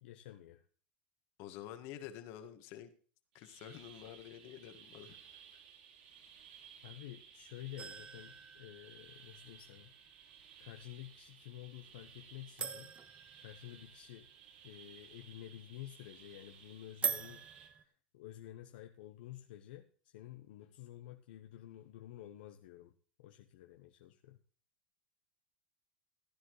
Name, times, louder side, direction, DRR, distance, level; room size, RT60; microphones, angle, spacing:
voice 1, 0.0-0.7 6.8-9.9 10.6-12.9 13.4-14.3 14.6-24.4, left 13 dB, 75° left, 5 dB, 0.9 m, -51 dB
voice 2, 1.4-2.9 3.3-5.4, left 11 dB, 55° left, 8 dB, 1.7 m, -49 dB
sound 1, 3.3-17.7, right 7 dB, 75° right, 2.7 m, -58 dB
sound 2, 7.8-9.7 12.6-14.4 17.0-17.8, right 6 dB, 25° right, 0.8 m, -42 dB
15.5 x 10.0 x 3.2 m, 0.42 s
hypercardioid pair, 110°, 5 cm